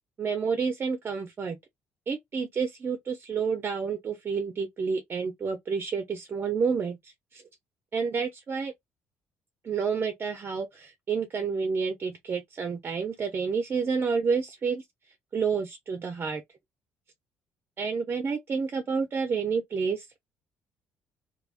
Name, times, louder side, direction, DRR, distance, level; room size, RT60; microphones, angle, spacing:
voice 1, 0.2-1.6 2.1-7.4 7.9-8.7 9.6-14.8 15.3-16.4 17.8-20.1, right 5 dB, 40° right, 0.7 m, -29 dB
3.4 x 2.9 x 2.4 m
cardioid pair, 95°, 6 cm